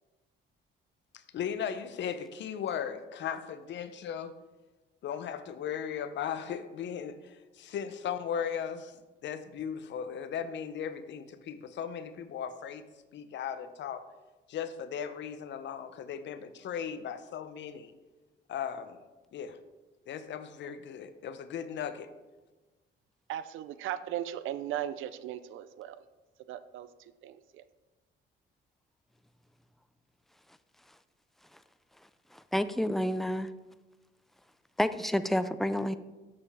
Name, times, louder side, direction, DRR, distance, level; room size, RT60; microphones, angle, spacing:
voice 1, 1.1-4.3 5.0-12.8 13.1-14.0 14.5-17.9 18.5-19.0 19.3-19.6 20.1-22.1, left 8 dB, 65° left, 11 dB, 0.6 m, -37 dB
voice 2, 23.3-26.0 26.5-27.6, right 11 dB, 85° right, 14 dB, 0.5 m, -38 dB
voice 3, 32.3-33.5 34.8-36.0, left 1 dB, ahead, 12 dB, 0.3 m, -29 dB
7.1 x 6.7 x 3.5 m, 1.2 s
cardioid pair, 90°, 20 cm